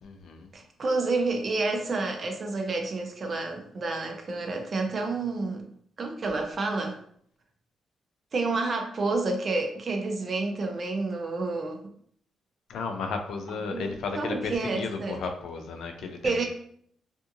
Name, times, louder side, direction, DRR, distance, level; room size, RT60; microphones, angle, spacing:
voice 1, 0.0-0.5 12.7-16.4, left 4 dB, 75° left, 4 dB, 0.4 m, -34 dB
voice 2, 0.5-5.7 6.0-7.0 8.3-11.8 13.7-15.2 16.2-16.4, right 3 dB, 45° right, 3 dB, 0.5 m, -29 dB
2.6 x 2.5 x 2.5 m, 0.64 s
cardioid pair, 90°, 0 cm